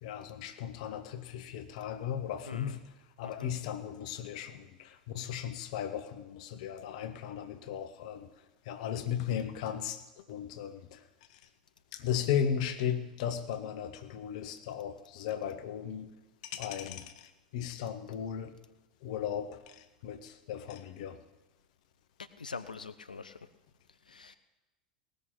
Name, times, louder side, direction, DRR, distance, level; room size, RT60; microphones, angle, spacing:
voice 1, 0.0-2.8 3.2-8.3 8.7-10.0 10.3-11.0 11.9-16.1 16.4-18.5 19.0-21.2, left 9 dB, 55° left, 10 dB, 1.2 m, -36 dB
voice 2, 22.4-23.4 24.1-24.4, left 4 dB, 80° left, 11 dB, 0.6 m, -44 dB
18.0 x 6.6 x 10.0 m, 1.0 s
figure-of-eight pair, 85°, 4 cm